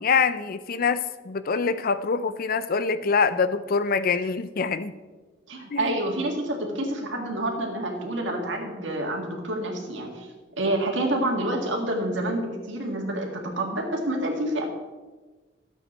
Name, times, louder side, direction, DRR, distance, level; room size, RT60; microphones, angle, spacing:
voice 1, 0.0-4.9 5.7-5.9, left 5 dB, 50° left, 13 dB, 0.5 m, -25 dB
voice 2, 5.5-10.3 10.6-14.6, right 1 dB, 80° right, 1 dB, 2.0 m, -28 dB
13.0 x 7.9 x 4.4 m, 1.3 s
head